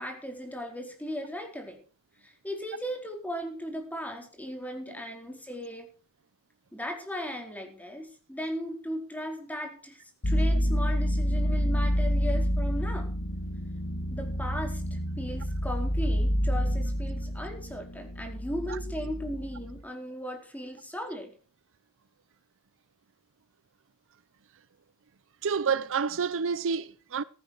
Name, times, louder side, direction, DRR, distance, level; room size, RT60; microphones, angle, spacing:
voice 1, 0.0-1.8 2.2-5.9 6.7-10.0 10.2-13.1 14.1-21.3, equal, 5° left, 4.6 m, -37 dB
sound 1, 10.2-19.8, equal, 75° left, 2.4 m, -28 dB
voice 2, 25.4-27.2, right 6 dB, 60° right, 0.6 m, -28 dB
15.5 x 14.5 x 4.6 m
head